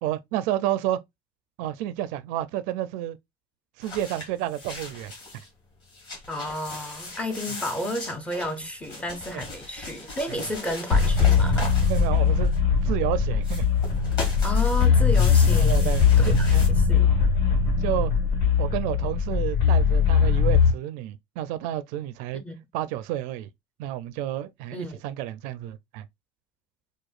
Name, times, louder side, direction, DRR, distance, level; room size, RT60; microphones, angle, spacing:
voice 1, 0.0-1.0 1.6-3.2 3.8-5.1 9.3-9.4 11.8-12.5 12.8-13.7 15.5-16.7 17.8-18.1 18.6-22.4 22.7-23.5 23.8-26.1, right 13 dB, 60° right, 0.4 m, -30 dB
sound 1, 3.8-5.5 5.8-12.8 13.4-16.7, left 2 dB, 25° left, 1.7 m, -39 dB
voice 2, 6.3-11.7 14.4-17.1 22.3-22.6 24.7-25.0, equal, 10° left, 0.5 m, -32 dB
sound 2, 10.9-20.7, left 6 dB, 80° left, 1.5 m, -20 dB
4.7 x 2.2 x 2.4 m
cardioid pair, 170°, 15 cm